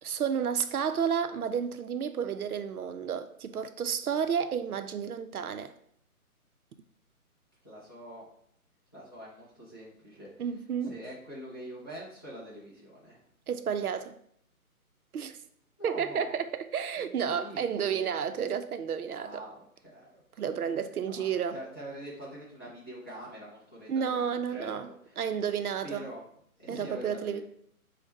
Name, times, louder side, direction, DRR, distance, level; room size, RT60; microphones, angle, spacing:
voice 1, 0.0-5.7 10.4-10.9 13.5-14.2 15.1-15.4 15.8-19.4 20.4-21.6 23.9-26.1 26.7-27.4, right 7 dB, 75° right, 0.6 m, -31 dB
voice 2, 7.6-8.3 8.9-10.3 10.8-13.2 15.8-16.4 17.0-18.1 19.2-20.4 21.0-25.2 25.8-26.2 26.6-27.4, equal, 15° left, 0.6 m, -45 dB
5.2 x 2.2 x 4.0 m
figure-of-eight pair, 150°, 45 cm